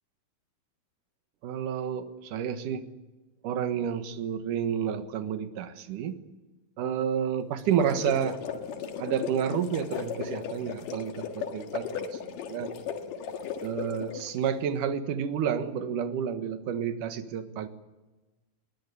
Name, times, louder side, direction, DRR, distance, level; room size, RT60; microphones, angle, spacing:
voice 1, 1.4-2.9 3.4-6.2 6.8-8.4 9.0-12.2 12.5-12.7 13.6-17.7, right 8 dB, 70° right, 9 dB, 3.0 m, -30 dB
sound 1, 7.6-14.4, left 7 dB, 75° left, 3.3 m, -36 dB
21.5 x 20.5 x 10.0 m, 1.1 s
omnidirectional pair, 3.9 m